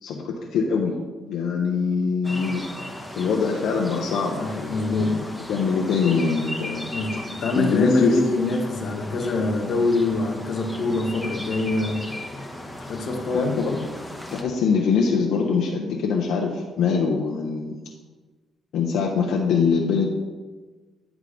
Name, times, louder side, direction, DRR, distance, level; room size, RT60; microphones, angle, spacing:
voice 1, 0.0-1.0 1.3-2.6 3.2-5.2 5.5-6.9 7.5-8.2 13.3-13.8 14.3-17.9 18.7-20.0, left 5 dB, 80° left, -1 dB, 0.8 m, -23 dB
sound 1, 2.2-14.4, left 1 dB, 5° left, 1.0 m, -36 dB
voice 2, 4.4-5.2 6.9-12.0 12.9-13.5, left 2 dB, 60° left, 2 dB, 1.2 m, -24 dB
9.7 x 3.6 x 5.1 m, 1.3 s
cardioid pair, 90°, 0 cm